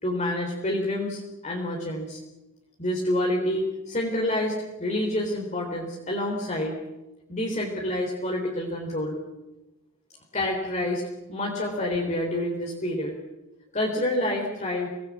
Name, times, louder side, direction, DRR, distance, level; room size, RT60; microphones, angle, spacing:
voice 1, 0.0-2.2 2.8-6.7 7.3-9.2 10.3-11.0 11.3-13.1 13.7-14.9, left 1 dB, 30° left, -1 dB, 3.7 m, -28 dB
25.5 x 18.5 x 8.6 m, 1.0 s
head